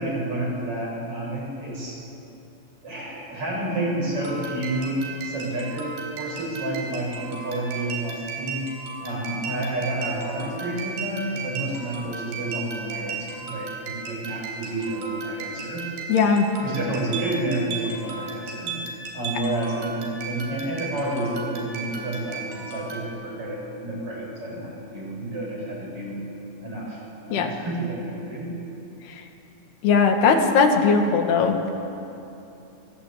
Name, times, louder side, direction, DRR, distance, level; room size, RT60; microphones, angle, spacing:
voice 1, 0.0-2.0 2.8-8.6 9.0-15.9 16.6-18.8 19.1-26.2 26.6-28.6, right 1 dB, 30° right, -3 dB, 8.9 m, -30 dB
sound 1, 4.2-23.0, right 5 dB, 80° right, 6.2 m, -36 dB
voice 2, 16.1-16.5 27.3-27.5 29.1-29.2 29.8-31.7, left 5 dB, 70° left, 4 dB, 4.1 m, -19 dB
29.5 x 23.0 x 8.8 m, 2.9 s
omnidirectional pair, 4.8 m